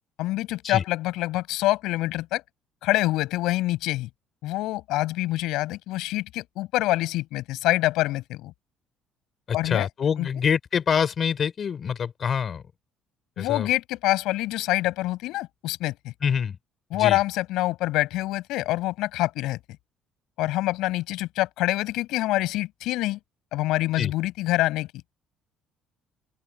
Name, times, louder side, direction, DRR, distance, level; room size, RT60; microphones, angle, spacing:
voice 1, 0.2-2.4 2.8-4.1 4.4-8.5 9.5-9.9 10.2-10.3 13.4-16.1 16.9-19.6 20.4-23.2 23.5-24.9, left 17 dB, 85° left, 5.8 m, -26 dB
voice 2, 9.5-12.6 13.4-13.7 16.2-16.6 16.9-17.2 24.0-24.1, left 7 dB, 35° left, 3.3 m, -25 dB
open air
cardioid pair, 150°, 0 cm